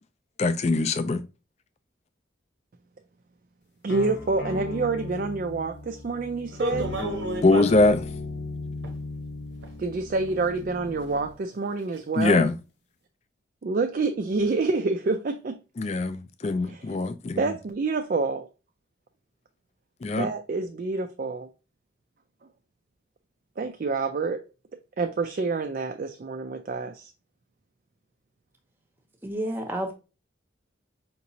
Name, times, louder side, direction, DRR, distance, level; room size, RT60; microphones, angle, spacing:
voice 1, 0.4-1.2 7.4-8.0 12.2-12.5 15.8-17.4 20.0-20.3, left 3 dB, 35° left, 0.3 m, -22 dB
voice 2, 3.8-7.0 9.8-12.5 13.6-15.6 16.7-16.9 17.4-18.5 20.2-21.5 23.6-24.4 25.0-27.1, right 3 dB, 50° right, 0.3 m, -27 dB
sound 1, 3.9-11.3, left 2 dB, 60° left, 0.8 m, -37 dB
sound 2, 6.5-7.8 8.8-8.9 9.6-9.7 10.2-10.3 10.9-11.0 11.5-11.7 12.0-12.1, right 1 dB, 70° right, 0.8 m, -31 dB
voice 3, 29.2-29.9, right 1 dB, 10° right, 0.7 m, -30 dB
5.1 x 2.9 x 2.7 m
head